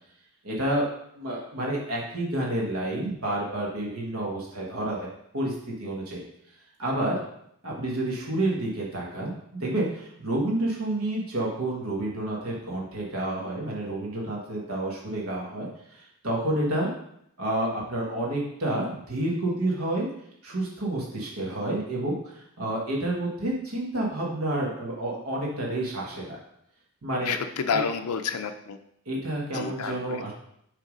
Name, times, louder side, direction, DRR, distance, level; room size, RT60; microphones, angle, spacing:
voice 1, 0.4-0.8 1.1-5.5 5.8-6.2 6.8-7.1 7.6-16.9 17.4-20.1 20.4-26.4 27.0-27.3 27.7-27.8 29.1-30.3, right 1 dB, 65° right, -3 dB, 1.4 m, -29 dB
voice 2, 27.2-28.8 29.5-30.2, left 6 dB, 75° left, 8 dB, 0.5 m, -29 dB
6.5 x 3.5 x 5.2 m, 0.73 s
head